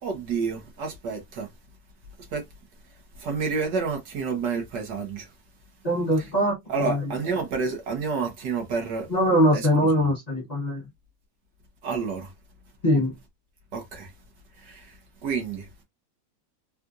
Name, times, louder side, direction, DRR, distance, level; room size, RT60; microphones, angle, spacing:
voice 1, 0.0-1.5 2.3-2.4 3.2-5.3 6.7-9.1 9.5-9.6 11.8-12.3 13.7-14.1 14.6-14.9 15.2-15.8, right 5 dB, 70° right, 1.7 m, -29 dB
voice 2, 5.8-7.1 9.1-10.8 12.8-13.1, equal, 30° left, 0.9 m, -22 dB
4.3 x 2.5 x 2.4 m
omnidirectional pair, 1.9 m